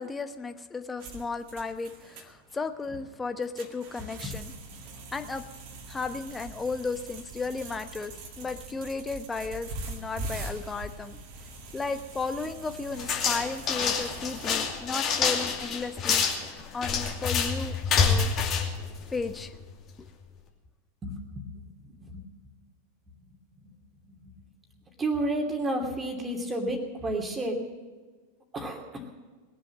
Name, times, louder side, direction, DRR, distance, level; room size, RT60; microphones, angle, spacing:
voice 1, 0.0-4.5 5.1-5.4 5.9-11.2 11.7-18.3 19.1-19.5 20.0-20.1, left 4 dB, 15° left, 8 dB, 1.1 m, -34 dB
sound 1, 1.0-14.5, right 2 dB, 45° right, 2.0 m, -42 dB
sound 2, 13.0-19.5, left 6 dB, 30° left, 2.6 m, -27 dB
voice 2, 21.0-21.7 22.0-22.1 25.0-27.6 28.5-28.8, right 1 dB, 15° right, 2 dB, 2.7 m, -31 dB
21.0 x 7.6 x 7.7 m, 1.3 s
figure-of-eight pair, 90°, 0 cm